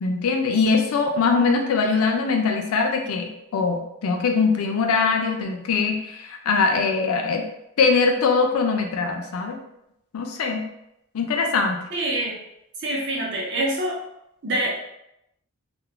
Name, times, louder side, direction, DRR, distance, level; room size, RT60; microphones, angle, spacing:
voice 1, 0.0-7.4 7.8-9.6 10.1-10.6 11.1-11.8, left 4 dB, 75° left, 4 dB, 0.4 m, -22 dB
voice 2, 11.9-12.4 12.8-14.0 14.4-14.7, right 1 dB, 50° right, -3 dB, 0.6 m, -25 dB
2.3 x 2.0 x 3.0 m, 0.82 s
head